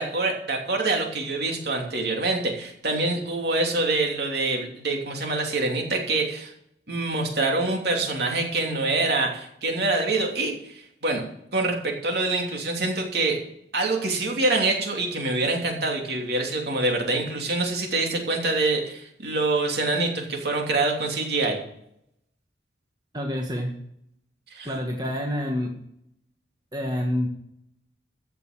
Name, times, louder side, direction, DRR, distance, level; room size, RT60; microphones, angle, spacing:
voice 1, 0.0-6.5 6.9-11.2 11.5-13.4 13.7-21.6 24.5-24.7, right 2 dB, 60° right, 2 dB, 3.0 m, -25 dB
voice 2, 23.1-23.7 24.6-25.7 26.7-27.3, left 1 dB, 20° right, 1 dB, 1.6 m, -27 dB
15.0 x 6.8 x 7.4 m, 0.74 s
head